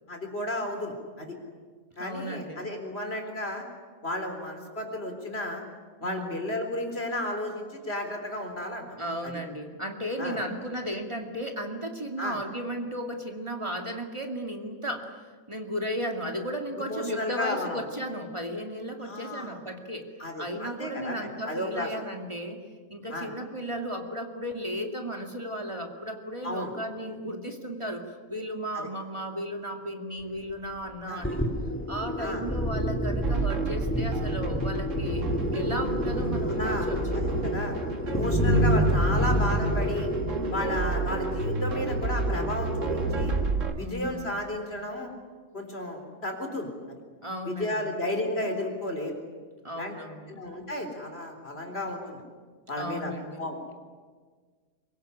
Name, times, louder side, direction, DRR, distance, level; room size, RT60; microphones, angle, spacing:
voice 1, 0.1-1.4 2.0-3.7 4.0-5.6 6.0-8.8 9.2-9.3 10.2-10.4 12.2-12.4 16.8-17.8 19.0-19.6 20.2-21.9 23.1-23.3 26.4-26.7 28.7-28.9 31.1-31.3 32.2-32.4 36.5-37.8 38.0-40.1 40.5-43.3 43.8-45.1 45.5-46.7 47.5-49.2 49.8-49.9 50.3-52.2 52.7-53.1 53.4-53.6, left 1 dB, 45° left, 4 dB, 4.3 m, -33 dB
voice 2, 2.0-2.6 6.0-6.4 9.0-15.1 15.5-20.1 20.4-22.6 22.9-28.0 28.3-31.4 31.9-35.2 35.5-37.0 43.8-44.3 47.2-47.9 49.6-50.4 52.8-53.4, equal, 20° right, 3 dB, 2.3 m, -35 dB
sound 1, 31.2-43.6, equal, 10° left, 2.7 m, -28 dB
sound 2, 33.2-43.7, right 4 dB, 65° right, 2.0 m, -32 dB
24.5 x 22.0 x 10.0 m, 1.5 s
omnidirectional pair, 1.4 m